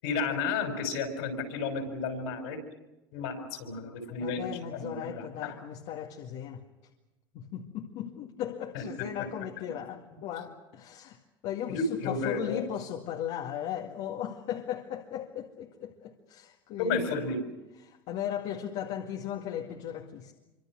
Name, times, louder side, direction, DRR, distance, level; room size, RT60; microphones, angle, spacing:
voice 1, 0.0-2.6 3.1-4.9 5.1-5.5 8.7-8.8 11.7-12.6 16.8-17.4, left 4 dB, 80° left, 6.0 m, -32 dB
voice 2, 4.2-6.6 7.3-17.2 17.8-20.3, left 10 dB, 65° left, 2.1 m, -37 dB
26.0 x 25.0 x 6.4 m
supercardioid pair, 95°, 12 cm